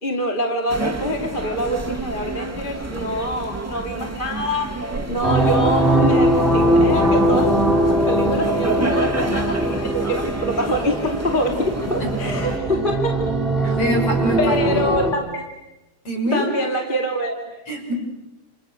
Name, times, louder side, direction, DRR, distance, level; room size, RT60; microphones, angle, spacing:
voice 1, 0.0-4.8 5.1-7.6 7.9-13.2 13.7-13.8 14.4-15.4 16.3-17.6, equal, 15° left, 2 dB, 2.1 m, -25 dB
sound 1, 0.7-12.6, right 3 dB, 20° right, 0.4 m, -30 dB
sound 2, 5.2-15.1, right 1 dB, ahead, 4.6 m, -20 dB
voice 2, 13.6-15.0 16.1-16.4 17.7-17.9, equal, 35° left, 2 dB, 7.1 m, -24 dB
29.5 x 29.5 x 6.6 m, 0.98 s
omnidirectional pair, 4.8 m